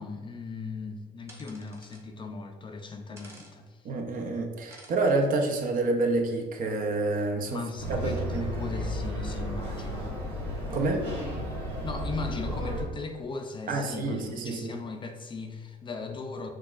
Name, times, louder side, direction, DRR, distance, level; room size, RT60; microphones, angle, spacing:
voice 1, 0.0-3.9 7.5-10.1 11.8-16.5, left 4 dB, 30° left, 5 dB, 0.4 m, -38 dB
sound 1, 1.3-2.0 3.2-3.5 4.7-5.3, right 1 dB, 15° right, 0.8 m, -51 dB
voice 2, 3.8-7.6 7.9-8.5 10.7-11.1 13.7-14.8, right 2 dB, 55° right, 3 dB, 0.6 m, -28 dB
sound 2, 7.8-12.8, equal, 75° right, 1.4 m, -33 dB
6.2 x 2.3 x 2.4 m, 1.5 s
cardioid pair, 110°, 17 cm